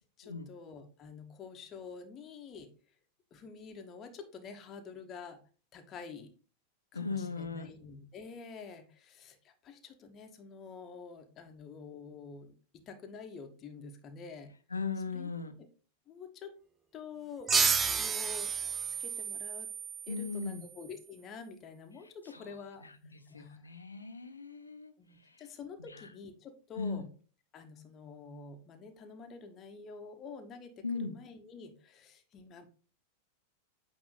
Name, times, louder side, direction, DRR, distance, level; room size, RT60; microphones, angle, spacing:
voice 1, 0.2-2.7 3.3-5.4 5.7-6.3 6.9-14.5 15.1-15.3 16.1-16.5 16.9-17.5 17.9-18.5 19.0-19.7 20.1-22.9 23.3-23.6 25.0-27.1 27.5-32.7, left 5 dB, 30° left, 5 dB, 1.0 m, -48 dB
voice 2, 6.9-7.7 14.7-15.5 20.1-20.6 22.3-22.6 22.8-24.9 25.2-25.4 25.8-26.1 26.8-27.1 30.8-31.2, left 4 dB, 80° left, 7 dB, 0.8 m, -38 dB
sound 1, 17.5-20.7, right 5 dB, 20° right, 0.5 m, -31 dB
8.6 x 3.0 x 3.9 m, 0.38 s
figure-of-eight pair, 90°, 0 cm